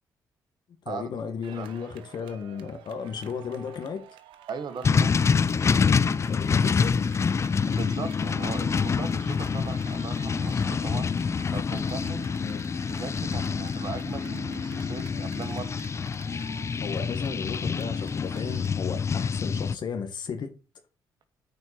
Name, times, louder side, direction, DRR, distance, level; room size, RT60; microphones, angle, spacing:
voice 1, 0.8-4.0 6.2-7.0 12.4-12.6 16.8-20.5, left 6 dB, 60° left, 1.5 m, -34 dB
sound 1, 1.4-18.7, right 10 dB, 85° right, 0.9 m, -51 dB
voice 2, 1.5-1.9 4.5-5.2 7.7-11.1 11.5-12.3 12.9-15.8, right 6 dB, 60° right, 1.5 m, -39 dB
sound 2, 4.8-19.7, left 5 dB, 35° left, 0.4 m, -26 dB
9.5 x 4.4 x 4.3 m
supercardioid pair, 65°, 8 cm